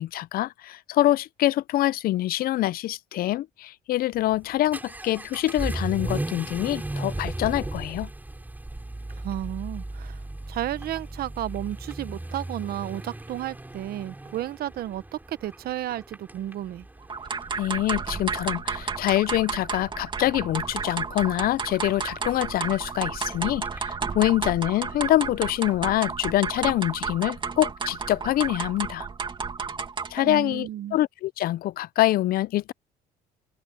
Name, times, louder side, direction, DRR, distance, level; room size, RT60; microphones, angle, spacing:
voice 1, 0.0-8.1 17.6-29.1 30.1-32.7, left 14 dB, 60° left, 0.5 m, -25 dB
Vehicle / Accelerating revving vroom, 4.1-23.9, right 2 dB, 10° right, 6.5 m, -37 dB
voice 2, 9.2-10.2 10.5-16.9 30.2-31.0, right 13 dB, 65° right, 1.0 m, -33 dB
sound 1, 17.1-30.3, right 5 dB, 30° right, 2.4 m, -32 dB
cardioid pair, 110°, 17 cm